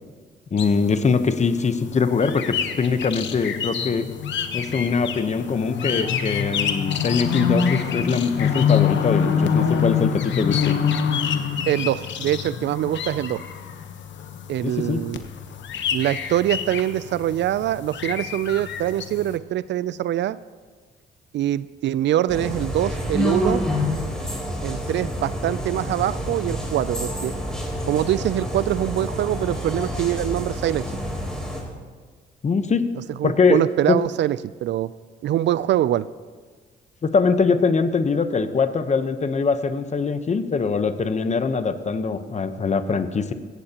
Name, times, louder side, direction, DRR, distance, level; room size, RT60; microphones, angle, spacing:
voice 1, 0.5-4.1 4.5-10.8 14.6-15.0 32.4-32.9 33.2-33.6 33.9-34.0 37.0-43.3, left 5 dB, 35° left, 10 dB, 0.9 m, -22 dB
sound 1, 0.6-19.3, left 7 dB, 65° left, 1.1 m, -26 dB
voice 2, 11.7-13.4 14.5-15.2 15.9-20.4 21.3-23.6 24.6-27.4 27.9-30.9 33.2-34.9 35.2-36.0, right 12 dB, 65° right, 17 dB, 0.4 m, -24 dB
sound 2, 22.3-31.6, equal, 5° left, 3.5 m, -28 dB
16.5 x 15.5 x 2.9 m, 1.5 s
cardioid pair, 90°, 20 cm